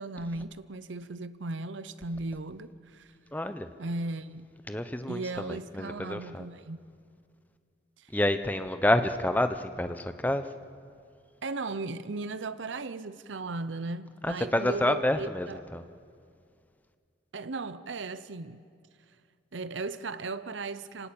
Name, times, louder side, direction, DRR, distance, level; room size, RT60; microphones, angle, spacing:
voice 1, 0.0-3.1 3.8-4.5 5.1-6.9 11.4-15.6 17.3-18.6 19.5-21.1, right 3 dB, 80° right, 0.7 m, -36 dB
voice 2, 3.3-3.7 4.7-6.5 8.1-10.4 14.2-15.8, left 1 dB, 10° left, 0.8 m, -28 dB
26.0 x 18.0 x 8.7 m
head